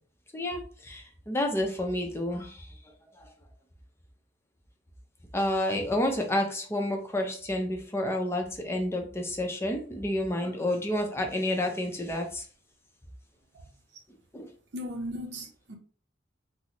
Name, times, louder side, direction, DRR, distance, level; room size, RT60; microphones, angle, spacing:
voice 1, 0.3-2.7 3.2-3.3 5.3-12.4 14.3-14.5, left 1 dB, 15° left, 0.5 m, -30 dB
voice 2, 14.7-15.8, equal, 70° right, 0.7 m, -36 dB
4.0 x 2.0 x 2.9 m
head